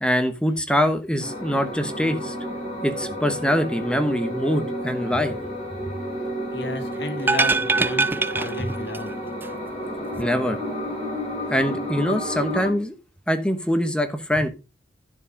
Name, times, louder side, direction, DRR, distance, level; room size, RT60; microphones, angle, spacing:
voice 1, 0.0-2.3 2.8-5.3 10.1-10.6 11.5-12.9 13.3-14.5, equal, 5° left, 8 dB, 1.1 m, -23 dB
sound 1, 1.2-12.7, equal, 35° left, 5.5 m, -31 dB
voice 2, 6.5-9.2, left 1 dB, 70° left, 6 dB, 1.9 m, -33 dB
sound 2, 7.2-9.1 9.4-9.5, right 3 dB, 10° right, 0.4 m, -23 dB
11.0 x 4.9 x 5.2 m, 0.31 s
head